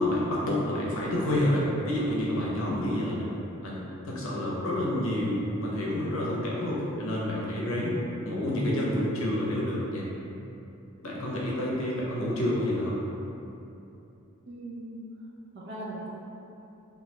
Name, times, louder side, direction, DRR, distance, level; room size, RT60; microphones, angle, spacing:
voice 1, 0.0-3.3 3.6-8.0 8.2-10.0 11.0-13.0, left 1 dB, 70° left, -5 dB, 0.6 m, -28 dB
voice 2, 14.5-15.3 15.5-16.2, right 1 dB, 50° right, -5 dB, 0.5 m, -40 dB
3.1 x 2.4 x 2.8 m, 2.9 s
head